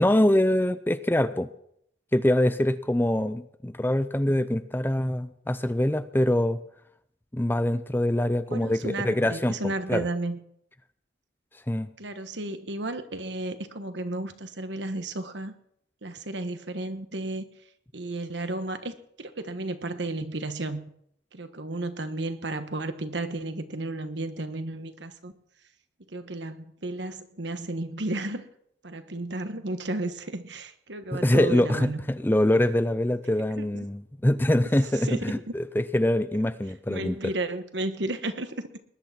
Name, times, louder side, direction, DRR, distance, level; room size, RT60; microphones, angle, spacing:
voice 1, 0.0-1.5 2.1-6.6 7.3-9.6 9.9-10.1 11.7-11.9 31.1-37.2, left 1 dB, 10° left, 13 dB, 0.5 m, -24 dB
voice 2, 8.5-10.4 12.0-15.5 16.0-17.4 17.9-20.8 21.3-25.3 26.1-28.4 28.8-32.0 33.6-33.9 34.9-35.5 36.9-38.7, right 2 dB, 75° right, 9 dB, 1.4 m, -33 dB
20.0 x 11.0 x 5.9 m, 0.71 s
head